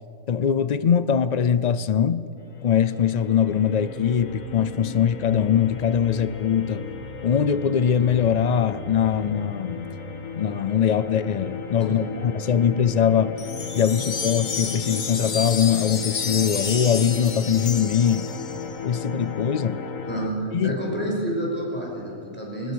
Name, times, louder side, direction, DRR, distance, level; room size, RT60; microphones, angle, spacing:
voice 1, 0.3-2.3 2.6-6.8 7.2-9.9 10.3-13.3 13.7-18.3 18.8-19.8 20.5-20.8, left 8 dB, 90° left, 15 dB, 0.3 m, -22 dB
sound 1, 2.4-20.3, left 5 dB, 75° left, 1.9 m, -35 dB
sound 2, 13.4-18.7, left 5 dB, 40° left, 1.4 m, -31 dB
voice 2, 20.0-22.7, right 1 dB, 5° left, -3 dB, 5.6 m, -29 dB
21.5 x 20.0 x 6.3 m, 2.9 s
omnidirectional pair, 1.4 m